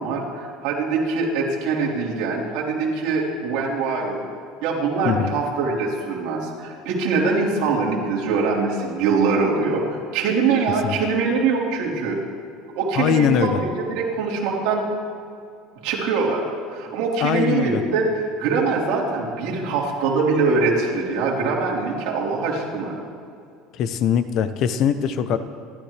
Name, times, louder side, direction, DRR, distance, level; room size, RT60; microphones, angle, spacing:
voice 1, 0.0-4.2 4.6-12.2 12.8-14.8 15.8-16.4 16.7-23.0, right 4 dB, 65° right, -4 dB, 3.9 m, -23 dB
voice 2, 12.9-13.6 17.2-17.8 23.7-25.4, left 8 dB, 45° left, 11 dB, 0.7 m, -21 dB
28.5 x 13.5 x 3.4 m, 2.4 s
cardioid pair, 165°, 0 cm